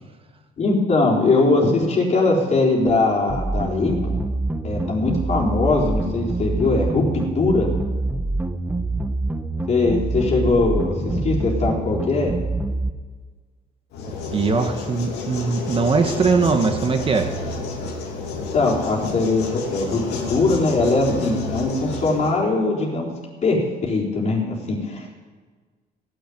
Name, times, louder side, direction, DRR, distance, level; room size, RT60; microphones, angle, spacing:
voice 1, 0.6-4.2 4.6-7.0 7.3-7.7 9.7-12.3 18.5-20.0 20.3-23.1 23.4-25.1, left 3 dB, 45° left, -2 dB, 4.1 m, -21 dB
sound 1, 3.3-12.9, right 2 dB, 10° right, 0.8 m, -25 dB
sound 2, 13.9-22.3, left 3 dB, 85° left, 2.7 m, -30 dB
voice 2, 14.3-17.3, right 4 dB, 30° right, 5 dB, 1.4 m, -20 dB
16.0 x 6.9 x 9.5 m, 1.4 s
cardioid pair, 110°, 17 cm